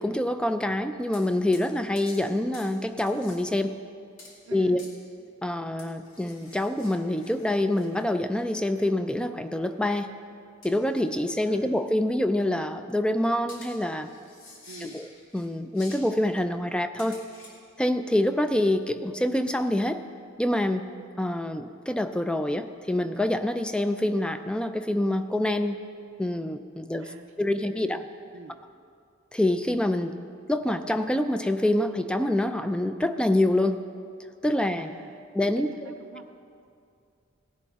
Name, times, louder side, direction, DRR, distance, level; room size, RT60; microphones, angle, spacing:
voice 1, 0.0-3.8 4.5-4.8 5.4-10.1 10.6-14.1 14.8-15.1 15.3-17.2 17.8-20.0 20.4-20.9 21.2-25.8 26.2-28.0 29.3-30.2 30.5-33.8 34.4-35.0 35.3-36.0, left 1 dB, 5° left, 9 dB, 0.3 m, -26 dB
sound 1, 1.1-1.3 1.5-1.7 2.0-2.2 2.5-2.7 3.0-3.4 4.2-4.4 4.8-4.9 5.8-8.0 8.4-8.5 10.6-11.0 11.3-11.4 13.5-15.5 15.7-16.1 17.0-17.6, left 2 dB, 85° left, 2.4 m, -49 dB
voice 2, 4.5-4.8 11.4-11.7 14.7-15.0 27.0-27.2 27.5-28.0 28.3-28.6 34.7-36.3, right 3 dB, 75° right, 3 dB, 0.6 m, -47 dB
17.0 x 11.0 x 3.6 m, 2.4 s
head